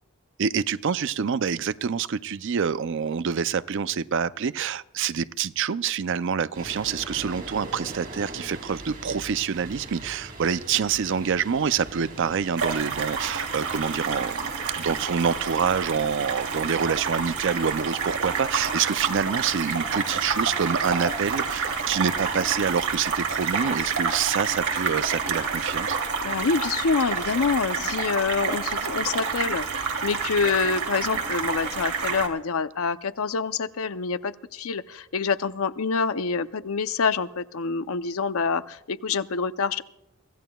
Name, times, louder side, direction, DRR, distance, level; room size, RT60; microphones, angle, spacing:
voice 1, 0.4-14.5 14.8-26.0, right 6 dB, 60° right, 15 dB, 0.5 m, -26 dB
sound 1, 6.5-23.4, right 2 dB, 40° right, 3.8 m, -43 dB
sound 2, 12.6-32.3, right 5 dB, 85° right, 2.7 m, -28 dB
voice 2, 26.2-39.8, left 5 dB, 75° left, 12 dB, 0.6 m, -26 dB
24.0 x 16.5 x 2.3 m, 0.84 s
head